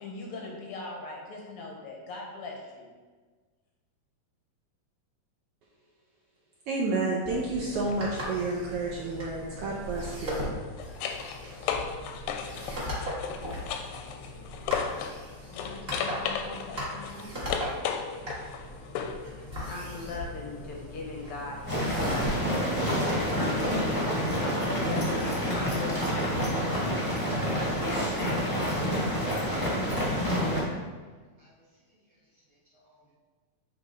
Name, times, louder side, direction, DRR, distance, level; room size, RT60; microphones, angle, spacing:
voice 1, 0.0-2.9 15.5-17.4 19.7-26.9 27.7-28.5, left 3 dB, 70° left, -1 dB, 1.3 m, -40 dB
voice 2, 6.7-10.5, right 3 dB, 80° right, -3 dB, 1.3 m, -30 dB
sound 1, 7.2-24.2, equal, 30° right, 1.0 m, -38 dB
sound 2, 7.7-8.0 10.3-15.2 15.5-19.3 21.9-22.0, left 7 dB, 85° left, 2.1 m, -35 dB
sound 3, 21.7-30.6, equal, 20° left, 0.6 m, -28 dB
voice 3, 31.4-33.2, equal, 50° right, -9 dB, 1.3 m, -65 dB
8.5 x 3.4 x 3.7 m, 1.4 s
omnidirectional pair, 3.5 m